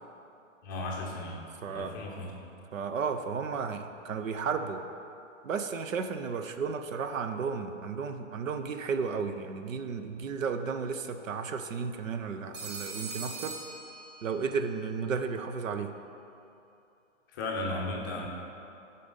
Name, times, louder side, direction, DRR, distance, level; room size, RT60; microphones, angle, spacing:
voice 1, 0.6-1.4 1.7-2.3 17.3-18.3, left 2 dB, 15° left, -2 dB, 0.5 m, -35 dB
voice 2, 1.6-1.9 2.7-4.8 5.4-13.5 14.2-15.9, right 5 dB, 90° right, 8 dB, 0.8 m, -33 dB
Telephone, 12.5-14.6, right 3 dB, 75° right, 2.1 m, -41 dB
11.5 x 4.2 x 5.3 m, 2.8 s
hypercardioid pair, 155°, 38 cm